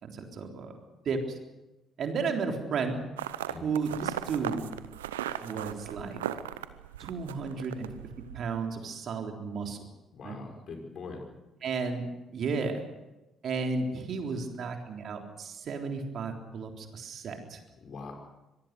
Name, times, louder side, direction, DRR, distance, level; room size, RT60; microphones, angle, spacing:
voice 1, 0.0-0.7 1.1-1.4 2.0-3.0 3.6-4.6 5.4-6.2 7.0-7.9 8.3-9.8 10.2-10.4 11.6-12.1 12.3-12.8 13.4-17.6, right 4 dB, 55° right, 3 dB, 3.6 m, -33 dB
sound 1, 3.2-8.5, right 11 dB, 80° right, 0.8 m, -37 dB
voice 2, 10.1-11.2 17.8-18.1, left 4 dB, 50° left, 4 dB, 5.4 m, -42 dB
24.5 x 19.0 x 6.9 m, 1.0 s
figure-of-eight pair, 45°, 0 cm